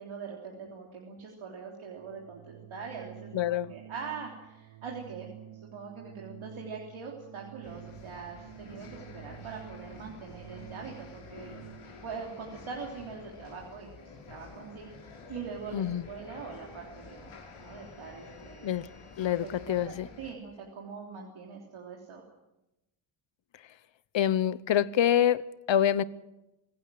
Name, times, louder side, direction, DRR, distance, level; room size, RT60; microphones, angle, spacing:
voice 1, 0.0-5.3 5.6-11.5 12.0-14.9 15.3-17.3 17.6-18.7 19.3-22.2, right 5 dB, 70° right, 3.6 m, -43 dB
Organ, 1.8-12.2, right 12 dB, 90° right, 1.3 m, -49 dB
voice 2, 3.3-3.7 15.7-16.1 18.6-18.9 19.2-20.1 24.1-26.0, left 10 dB, 65° left, 0.9 m, -26 dB
airport lounge, 7.6-20.3, left 4 dB, 80° left, 5.3 m, -49 dB
26.5 x 17.0 x 7.7 m
wide cardioid pair, 155°, 49 cm